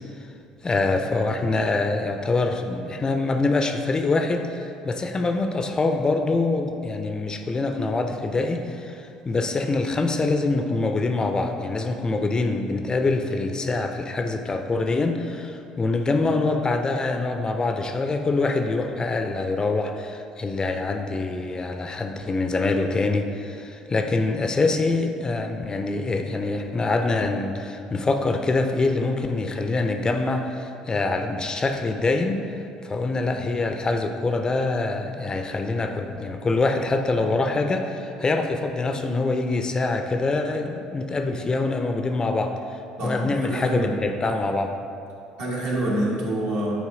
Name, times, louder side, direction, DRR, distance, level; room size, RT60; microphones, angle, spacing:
voice 1, 0.6-32.4 32.8-44.7, left 3 dB, 25° left, 5 dB, 0.5 m, -25 dB
voice 2, 43.0-43.9 45.4-46.7, right 1 dB, 60° right, -5 dB, 1.3 m, -26 dB
8.5 x 3.0 x 3.8 m, 2.5 s
figure-of-eight pair, 55°, 3 cm